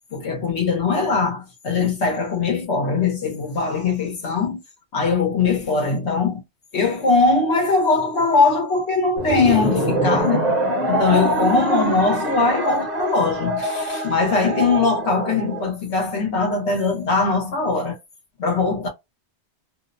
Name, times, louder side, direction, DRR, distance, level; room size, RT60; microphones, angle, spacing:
voice 1, 0.1-4.6 4.9-6.4 6.7-10.5 10.9-18.0 18.4-18.9, left 4 dB, 75° left, 1.1 m, -21 dB
sound 1, 9.2-15.7, right 1 dB, 50° right, 0.6 m, -24 dB
2.5 x 2.0 x 2.4 m
omnidirectional pair, 1.1 m